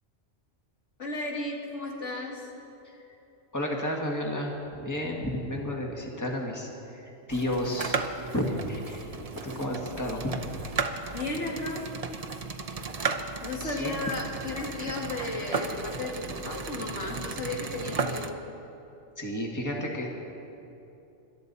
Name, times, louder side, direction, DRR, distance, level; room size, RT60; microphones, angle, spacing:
voice 1, 1.0-2.4 11.1-11.9 13.4-18.3, left 2 dB, 85° left, -2 dB, 2.6 m, -34 dB
voice 2, 3.5-7.0 7.3-8.0 8.3-10.3 13.6-14.0 19.2-20.2, left 1 dB, 15° left, -1 dB, 1.8 m, -32 dB
sound 1, 7.3-18.3, right 4 dB, 35° right, 0.7 m, -35 dB
26.5 x 12.5 x 4.1 m, 2.9 s
omnidirectional pair, 1.2 m